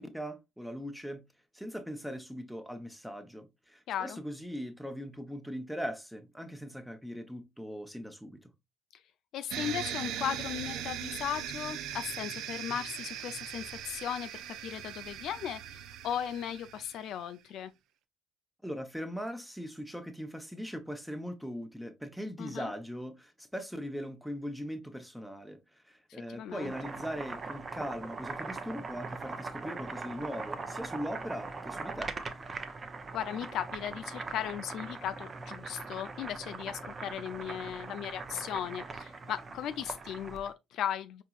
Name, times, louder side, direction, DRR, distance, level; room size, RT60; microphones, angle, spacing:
voice 1, 0.1-1.2 1.5-8.5 18.6-25.6 25.9-32.1, equal, ahead, 0.8 m, -40 dB
voice 2, 3.9-4.2 9.3-17.7 22.4-22.7 26.3-26.7 33.1-41.2, left 10 dB, 70° left, 0.3 m, -37 dB
sound 1, 9.5-17.1, right 10 dB, 80° right, 0.4 m, -40 dB
Boiling, 26.4-40.5, right 3 dB, 35° right, 0.6 m, -41 dB
4.5 x 2.9 x 2.4 m
supercardioid pair, 80°, 0 cm